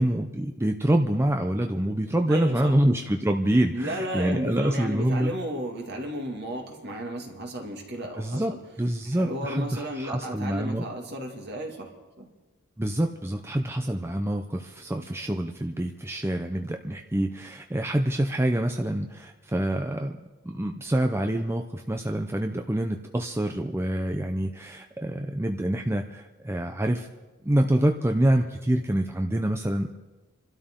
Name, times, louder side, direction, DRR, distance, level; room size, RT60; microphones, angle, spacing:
voice 1, 0.0-5.3 8.2-8.5 8.8-10.8 12.8-20.1 20.4-27.1 27.4-29.9, right 1 dB, 10° right, 4 dB, 0.6 m, -26 dB
voice 2, 2.3-2.8 3.7-8.6 9.1-11.9 12.2-12.3, right 1 dB, 50° right, 2 dB, 2.3 m, -33 dB
28.0 x 12.5 x 3.8 m, 1.2 s
head